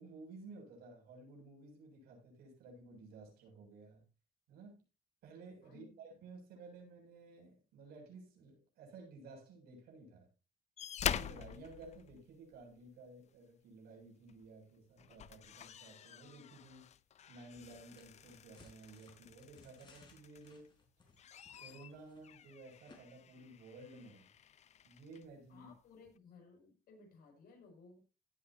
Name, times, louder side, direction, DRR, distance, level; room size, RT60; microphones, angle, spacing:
voice 1, 0.0-4.0 4.5-4.8 5.2-10.3 11.0-16.9 17.3-20.8 21.6-24.3 24.8-25.7, right 3 dB, 85° right, 7.1 m, -55 dB
voice 2, 5.6-6.0 25.5-28.0, left 4 dB, 70° left, 6.6 m, -59 dB
sound 1, 10.8-12.8 14.3-14.5 14.9-20.7 21.1-25.3 26.2-26.3, left 9 dB, 45° left, 0.6 m, -46 dB
sound 2, 17.6-22.5 22.9-23.0, left 3 dB, 30° left, 4.6 m, -64 dB
17.0 x 8.9 x 2.8 m
cardioid pair, 125°, 16 cm